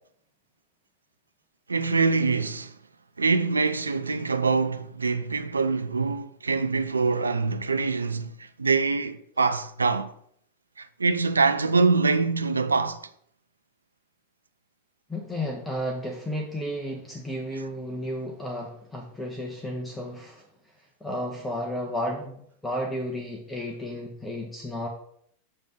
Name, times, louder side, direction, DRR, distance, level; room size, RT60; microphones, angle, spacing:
voice 1, 1.7-2.7 3.2-10.1 10.8-13.1, right 4 dB, 75° right, 0.4 m, -24 dB
voice 2, 15.1-20.4 21.0-24.9, equal, 5° left, 1.0 m, -33 dB
6.4 x 3.5 x 5.8 m
figure-of-eight pair, 90°, 0 cm